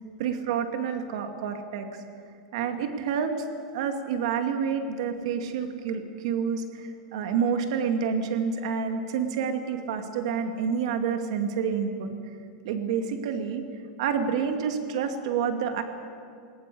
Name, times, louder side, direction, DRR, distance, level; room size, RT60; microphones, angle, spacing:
voice 1, 0.2-1.9 2.5-3.5 3.7-12.1 12.6-13.6 14.0-15.8, right 6 dB, 55° right, 5 dB, 2.3 m, -28 dB
21.5 x 19.5 x 8.5 m, 2.3 s
supercardioid pair, 180°, 4 cm